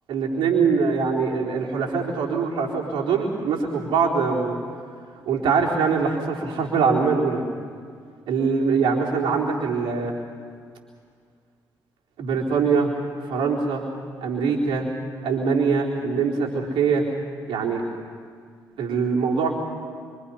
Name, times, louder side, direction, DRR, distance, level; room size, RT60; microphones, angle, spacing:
voice 1, 0.1-4.6 5.3-7.4 8.3-10.1 12.2-12.9 13.2-13.8 14.2-14.9 15.2-17.0 17.5-17.8 18.8-19.6, right 5 dB, 75° right, -1 dB, 4.0 m, -23 dB
25.5 x 25.5 x 5.7 m, 2.1 s
hypercardioid pair, 45°, 9 cm